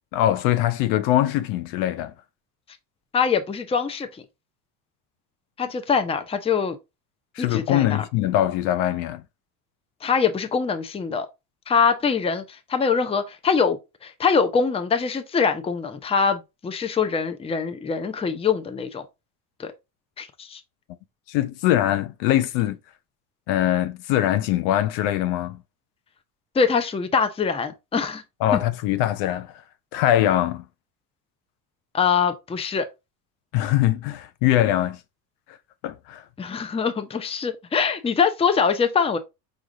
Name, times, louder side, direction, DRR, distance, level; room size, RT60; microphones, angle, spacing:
voice 1, 0.1-2.1 7.4-9.2 21.3-22.8 23.5-25.6 28.4-29.5 29.9-30.6 33.5-35.0 35.8-36.2, left 13 dB, 65° left, 0.6 m, -22 dB
voice 2, 3.1-4.2 5.6-6.8 7.4-8.0 10.0-11.3 11.7-19.0 19.6-19.7 20.2-20.6 26.5-28.2 28.5-28.6 31.9-32.9 36.4-39.2, left 6 dB, 10° left, 0.6 m, -23 dB
4.9 x 2.5 x 3.7 m
supercardioid pair, 85°, 49 cm